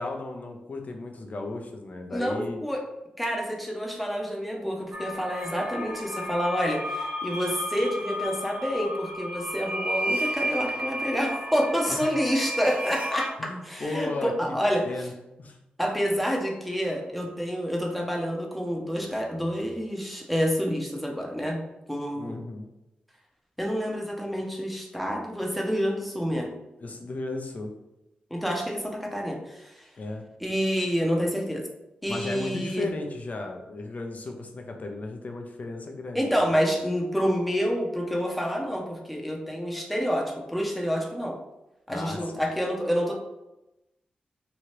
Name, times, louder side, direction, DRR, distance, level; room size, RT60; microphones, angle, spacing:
voice 1, 0.0-2.6 11.9-12.1 13.4-14.6 14.8-15.1 15.4-15.6 22.2-22.7 26.8-27.7 30.0-30.2 32.1-36.5 41.9-42.4, left 2 dB, 50° left, 3 dB, 0.6 m, -35 dB
voice 2, 2.1-2.8 3.2-14.9 15.8-21.6 21.9-22.4 23.6-26.5 28.3-29.9 30.4-31.6 32.0-32.9 36.1-41.4 41.9-43.2, equal, ahead, 0 dB, 0.8 m, -28 dB
sound 1, 4.9-13.3, equal, 55° right, 0.7 m, -32 dB
2.9 x 2.3 x 3.1 m, 0.96 s
cardioid pair, 45°, 3 cm